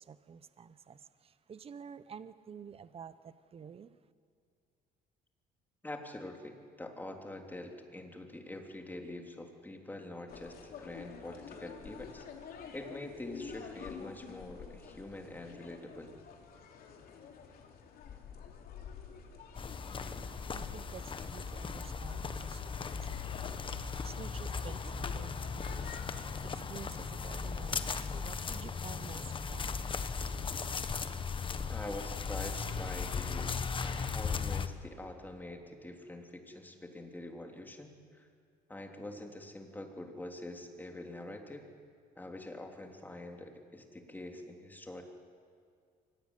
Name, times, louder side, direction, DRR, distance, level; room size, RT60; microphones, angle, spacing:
voice 1, 0.0-4.0 20.1-23.2 24.0-25.9 26.3-29.8, right 7 dB, 35° right, 14 dB, 0.9 m, -50 dB
voice 2, 5.8-12.2 12.7-16.2 31.7-38.3 38.7-41.7 42.2-45.0, left 1 dB, 10° left, 3 dB, 3.3 m, -45 dB
sound 1, 10.3-26.4, left 6 dB, 60° left, 3.2 m, -49 dB
sound 2, 19.6-34.7, left 5 dB, 30° left, 1.3 m, -37 dB
24.5 x 17.5 x 10.0 m, 2.3 s
cardioid pair, 110°, 17 cm